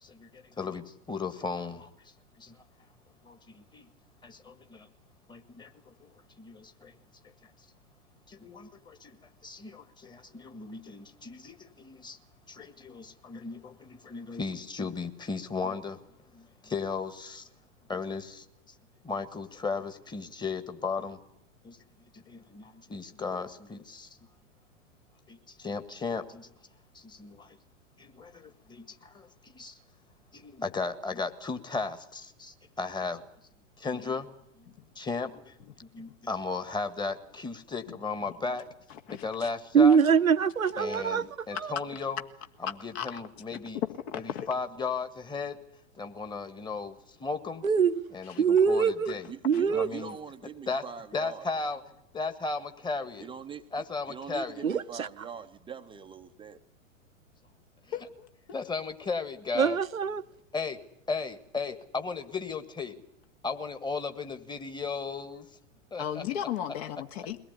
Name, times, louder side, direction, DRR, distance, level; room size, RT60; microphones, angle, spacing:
voice 1, 0.0-1.9 2.4-2.6 3.2-3.9 4.2-4.9 5.3-6.9 8.3-9.2 9.4-12.2 12.5-17.5 17.9-18.5 19.0-21.2 21.6-21.8 22.1-24.2 25.3-26.5 26.9-27.6 28.0-29.8 30.3-33.2 33.8-34.3 34.6-34.7 35.0-38.7 39.1-40.0 40.8-42.2 42.6-43.8 44.1-45.6 46.0-47.6 48.1-49.3 49.7-50.2 50.7-50.8 51.1-51.8 52.1-53.3 53.7-54.6 58.5-59.8 60.5-60.8 61.1-63.0 63.4-65.5 65.9-66.2, left 4 dB, 10° left, 1.7 m, -36 dB
voice 2, 38.9-39.5 42.9-43.2 43.5-43.6 44.1-44.5 49.5-49.6 57.9-58.6 66.0-67.4, left 10 dB, 50° left, 2.1 m, -36 dB
voice 3, 39.7-41.3 47.6-48.0 48.4-49.2 49.4-49.9 54.6-55.1 59.6-60.2, right 6 dB, 80° right, 1.0 m, -23 dB
voice 4, 49.3-51.5 53.2-56.6, right 7 dB, 15° right, 0.8 m, -43 dB
22.5 x 17.5 x 9.6 m
figure-of-eight pair, 100°, 40 cm